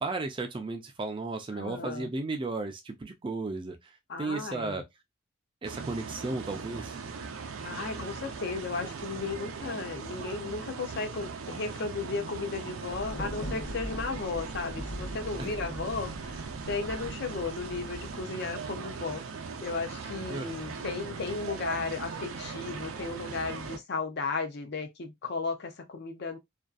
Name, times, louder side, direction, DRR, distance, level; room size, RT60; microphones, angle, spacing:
voice 1, 0.0-4.8 5.6-7.0 15.4-15.5 20.3-20.5, right 3 dB, 25° right, 0.3 m, -34 dB
voice 2, 1.6-2.1 4.1-4.8 7.6-19.2 19.6-26.4, left 4 dB, 50° left, 0.5 m, -35 dB
sound 1, 5.6-23.8, right 5 dB, 85° right, 0.5 m, -40 dB
Thunder, 12.9-18.2, equal, 90° left, 1.0 m, -41 dB
2.5 x 2.3 x 2.3 m
head